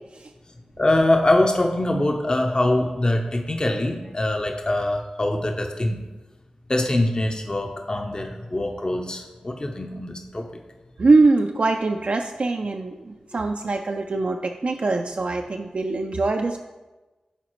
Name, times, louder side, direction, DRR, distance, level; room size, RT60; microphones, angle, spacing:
voice 1, 0.8-6.0 6.7-10.5, left 1 dB, 35° left, 3 dB, 0.7 m, -23 dB
voice 2, 11.0-16.6, right 3 dB, 60° right, 3 dB, 0.4 m, -22 dB
11.0 x 4.0 x 3.1 m, 1.2 s
cardioid pair, 45°, 2 cm